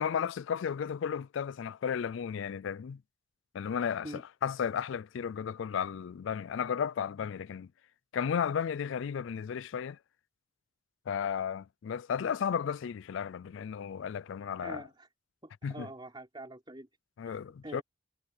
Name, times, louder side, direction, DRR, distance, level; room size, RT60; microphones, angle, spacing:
voice 1, 0.0-3.0 3.5-7.7 8.1-10.0 11.1-14.8 15.6-15.9 17.2-17.8, left 7 dB, 65° left, 0.3 m, -34 dB
voice 2, 14.6-15.1 15.4-16.9 17.2-17.4 17.6-17.8, right 1 dB, 25° right, 3.6 m, -45 dB
head